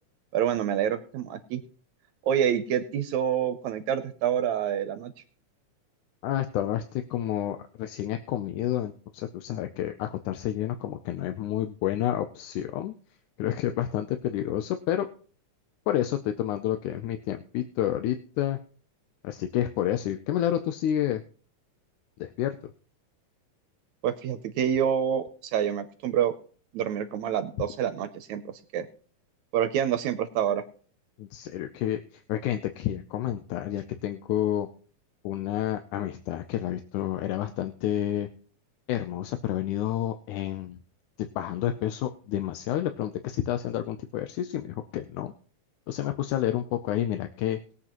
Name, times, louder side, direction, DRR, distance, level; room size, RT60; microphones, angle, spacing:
voice 1, 0.3-1.6 2.2-5.1 24.0-26.3 26.7-28.4 28.7-28.9 29.5-30.6, right 9 dB, 75° right, 10 dB, 1.9 m, -27 dB
voice 2, 6.2-13.0 13.4-15.1 15.9-18.6 19.2-21.2 22.2-22.6 31.2-34.7 35.2-38.3 38.9-40.8 41.4-45.3 45.9-47.6, left 12 dB, 85° left, 7 dB, 2.2 m, -29 dB
20.0 x 8.2 x 3.0 m, 0.42 s
omnidirectional pair, 3.4 m